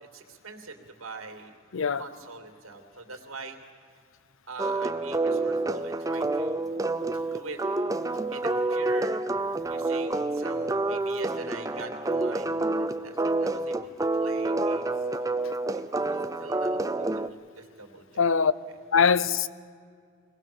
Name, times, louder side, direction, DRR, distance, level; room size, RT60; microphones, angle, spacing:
voice 1, 0.1-1.5 1.9-3.6 4.5-6.8 7.3-7.6 8.3-9.2 9.6-14.9 15.7-18.3, right 4 dB, 90° right, 2.9 m, -43 dB
voice 2, 1.7-2.0 18.2-18.5 18.9-19.5, left 6 dB, 70° left, 0.7 m, -22 dB
sound 1, 4.6-17.3, right 2 dB, 15° right, 0.5 m, -28 dB
23.5 x 19.0 x 7.3 m
head